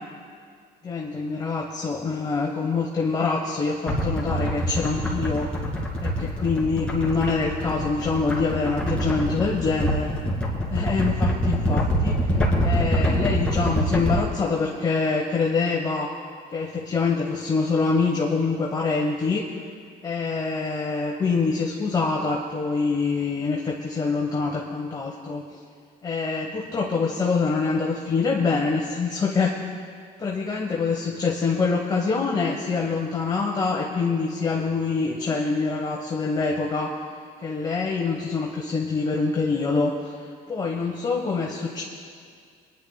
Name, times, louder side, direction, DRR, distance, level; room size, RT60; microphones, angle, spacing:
voice 1, 0.8-5.5 6.0-10.1 10.7-12.4 12.6-16.1 16.5-19.4 20.0-25.6 26.0-29.6 30.2-37.0 37.4-41.8, left 4 dB, 25° left, -2 dB, 1.2 m, -25 dB
sound 1, 3.9-14.2, equal, 5° left, 2.5 m, -25 dB
28.5 x 10.5 x 2.3 m, 2.1 s
cardioid pair, 110°, 17 cm